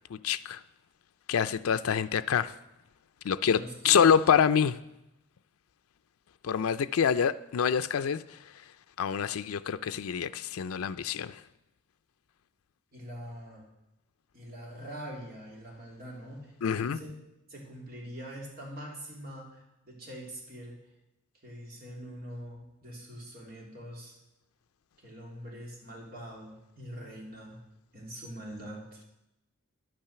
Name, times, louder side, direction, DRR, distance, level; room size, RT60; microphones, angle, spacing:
voice 1, 0.1-0.6 1.3-2.5 3.2-4.8 6.4-8.2 9.0-11.4 16.6-17.0, left 7 dB, 90° left, 0.4 m, -26 dB
voice 2, 3.4-4.1 12.9-13.6 14.3-17.1 17.5-20.8 21.4-24.2 25.0-27.6 27.9-29.0, equal, 45° right, 3.3 m, -43 dB
10.5 x 8.8 x 6.7 m
head